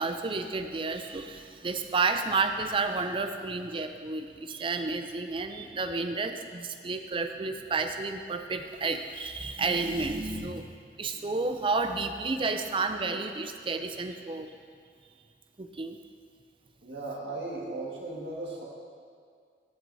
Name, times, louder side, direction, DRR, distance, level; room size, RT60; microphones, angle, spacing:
voice 1, 0.0-14.5 15.6-16.0, right 3 dB, 30° right, 7 dB, 0.5 m, -31 dB
voice 2, 16.8-18.6, right 2 dB, 75° right, -3 dB, 1.8 m, -36 dB
15.0 x 7.6 x 2.7 m, 2.1 s
head